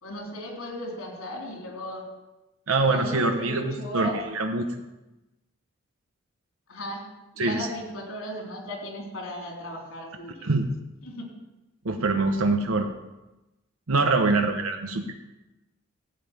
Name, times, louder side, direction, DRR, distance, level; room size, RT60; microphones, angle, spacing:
voice 1, 0.0-2.1 2.8-4.2 6.7-7.1 7.3-10.5 11.0-11.3, equal, 90° left, 1 dB, 3.5 m, -36 dB
voice 2, 2.7-4.7 7.4-7.7 10.4-10.7 11.8-12.9 13.9-15.1, right 3 dB, 90° right, 5 dB, 1.0 m, -24 dB
14.0 x 5.4 x 9.3 m, 1.0 s
head